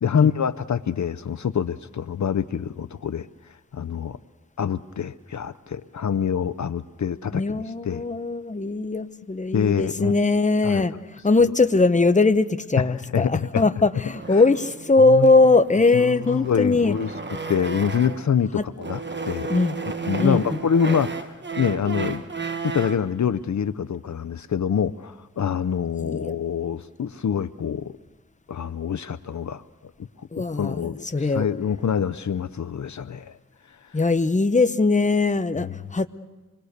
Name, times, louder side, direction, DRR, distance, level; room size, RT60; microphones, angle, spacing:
voice 1, 0.0-3.3 3.7-4.2 4.6-8.0 9.5-10.1 10.6-10.8 12.8-13.6 14.3-14.4 15.1-15.3 15.9-17.1 17.5-19.5 20.1-22.2 22.6-27.9 28.5-29.6 30.2-33.4 35.6-35.8, left 7 dB, 65° left, 12 dB, 0.7 m, -26 dB
voice 2, 7.3-10.9 11.2-16.9 18.5-18.6 19.5-19.8 20.2-20.6 26.0-26.3 30.3-31.5 33.9-36.1, left 3 dB, 25° left, 10 dB, 0.9 m, -20 dB
sound 1, 14.1-18.4 18.8-23.1, right 4 dB, 35° right, 1.3 m, -33 dB
26.5 x 22.0 x 6.7 m, 1.3 s
wide cardioid pair, 65°, 31 cm